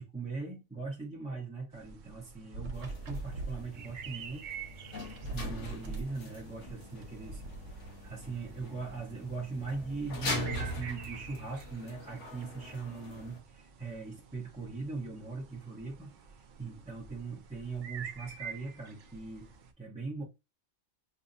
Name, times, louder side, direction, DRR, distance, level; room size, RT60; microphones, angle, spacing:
voice 1, 0.0-4.5 4.8-7.4 7.7-16.1 16.6-19.5 19.8-20.2, right 4 dB, 5° right, 0.6 m, -40 dB
sound 1, 1.7-19.7, right 7 dB, 55° right, 0.6 m, -49 dB
sound 2, 2.5-3.6 4.7-4.8 5.0-6.1 7.0-7.9, right 2 dB, 75° right, 1.1 m, -40 dB
sound 3, 2.7-13.4, left 2 dB, 90° left, 1.3 m, -43 dB
5.5 x 2.0 x 2.5 m
omnidirectional pair, 1.2 m